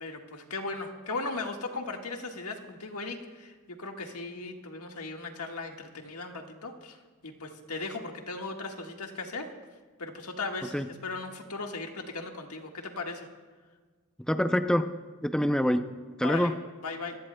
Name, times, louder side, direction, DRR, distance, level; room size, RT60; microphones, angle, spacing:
voice 1, 0.0-9.5 10.0-13.3 16.2-16.5 16.8-17.2, left 3 dB, 80° left, 2 dB, 1.6 m, -37 dB
voice 2, 14.3-15.9 16.2-16.6, equal, 5° left, 8 dB, 0.4 m, -26 dB
25.0 x 17.0 x 2.2 m, 1.4 s
head